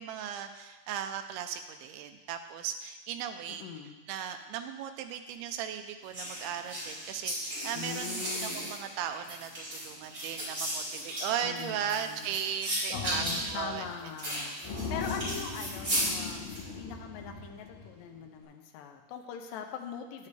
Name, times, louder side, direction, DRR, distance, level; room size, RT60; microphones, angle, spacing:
voice 1, 0.0-3.6 4.1-14.5, right 9 dB, 80° right, 7 dB, 2.4 m, -37 dB
voice 2, 3.6-4.0 7.7-8.7 11.4-12.3 12.9-14.6 14.9-16.4 16.7-20.3, left 7 dB, 85° left, 4 dB, 2.0 m, -41 dB
sound 1, 6.1-16.6, right 1 dB, 25° right, 2.2 m, -35 dB
sound 2, 12.9-13.9 14.2-14.3 14.6-18.0, left 4 dB, 55° left, 2.6 m, -39 dB
9.4 x 8.4 x 3.3 m, 1.2 s
omnidirectional pair, 4.8 m